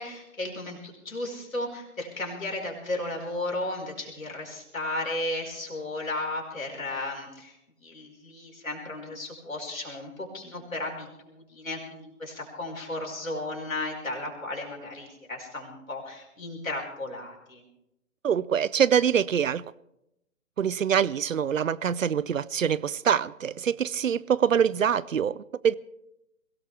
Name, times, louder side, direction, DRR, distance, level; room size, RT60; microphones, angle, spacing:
voice 1, 0.0-7.6 7.8-17.6, left 2 dB, 75° left, 4.7 m, -34 dB
voice 2, 18.2-19.6 20.6-25.7, right 8 dB, 70° right, 0.6 m, -24 dB
22.5 x 16.5 x 3.4 m
figure-of-eight pair, 135°, 41 cm